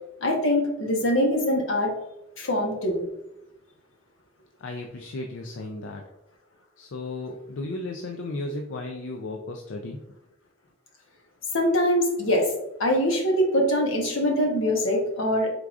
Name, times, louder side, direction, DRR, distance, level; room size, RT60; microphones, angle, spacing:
voice 1, 0.2-1.9 2.4-3.0 11.5-12.5 12.8-15.5, equal, 75° left, 1 dB, 1.0 m, -23 dB
voice 2, 4.6-6.0 6.8-10.0, left 2 dB, 60° left, 2 dB, 0.4 m, -34 dB
4.7 x 3.7 x 2.4 m, 0.91 s
head